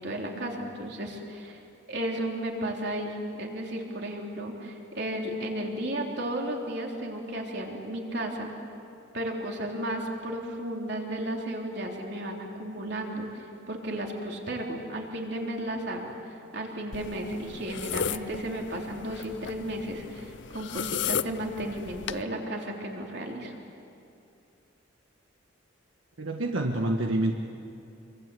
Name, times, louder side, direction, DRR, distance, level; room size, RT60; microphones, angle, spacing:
voice 1, 0.0-1.6 1.9-8.5 9.1-23.5, right 1 dB, 55° right, 0 dB, 3.6 m, -34 dB
sound 1, 16.9-22.2, left 8 dB, 65° left, 0.6 m, -35 dB
voice 2, 26.2-27.3, right 1 dB, 85° right, 2 dB, 1.5 m, -27 dB
27.0 x 24.0 x 8.4 m, 2.8 s
head